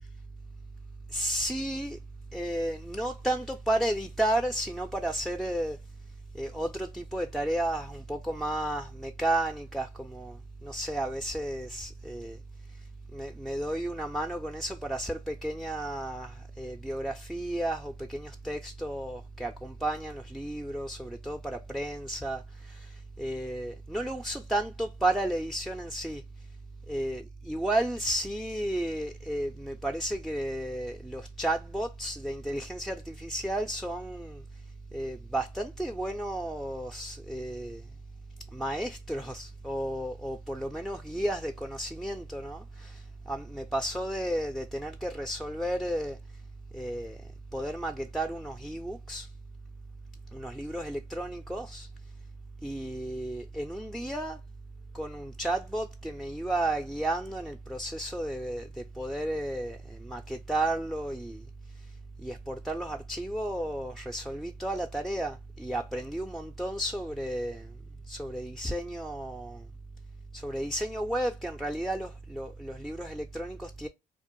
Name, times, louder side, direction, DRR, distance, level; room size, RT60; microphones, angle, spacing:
voice 1, 1.1-2.0 2.3-5.8 6.3-12.4 13.1-26.2 26.9-34.4 34.9-37.8 38.5-46.2 46.7-47.2 47.5-49.3 50.3-51.9 52.6-54.4 54.9-61.4 62.2-67.7 68.1-69.6 70.3-73.9, right 1 dB, ahead, 0.3 m, -33 dB
2.5 x 2.1 x 2.9 m
supercardioid pair, 70°, 18 cm